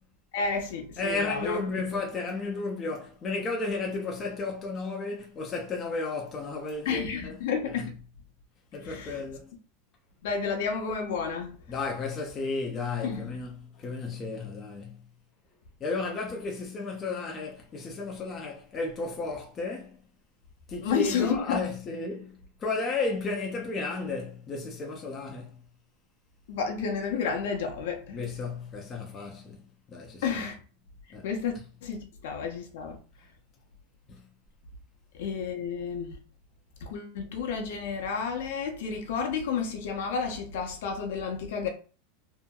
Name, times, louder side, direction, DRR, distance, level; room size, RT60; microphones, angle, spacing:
voice 1, 0.3-1.6 6.8-7.9 8.8-9.2 10.2-11.6 13.0-13.3 20.8-21.7 26.5-28.2 30.2-30.6 31.1-31.5 31.8-33.0 35.1-36.2 36.8-41.7, left 6 dB, 65° left, 0.7 m, -31 dB
voice 2, 1.0-7.4 7.7-7.9 8.7-9.5 11.7-15.0 15.8-20.0 20.7-25.6 28.1-29.6 29.9-30.4 31.1-31.3 34.1-34.2, left 3 dB, 15° left, 0.4 m, -33 dB
2.8 x 2.6 x 2.3 m
supercardioid pair, 175°, 0 cm